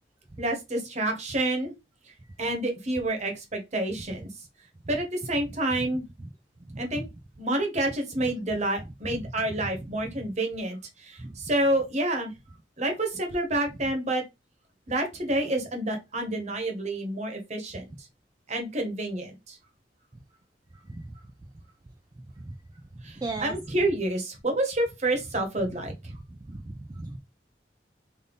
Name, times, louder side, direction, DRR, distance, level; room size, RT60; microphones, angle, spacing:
voice 1, 0.4-1.7 2.4-4.3 4.9-6.0 6.8-7.0 7.4-12.3 12.8-14.2 14.9-17.9 18.5-19.6 23.0-25.9, right 1 dB, 40° right, 1.1 m, -28 dB
voice 2, 23.2-23.5 26.5-27.2, right 2 dB, 20° right, 0.3 m, -36 dB
3.5 x 2.6 x 3.8 m
head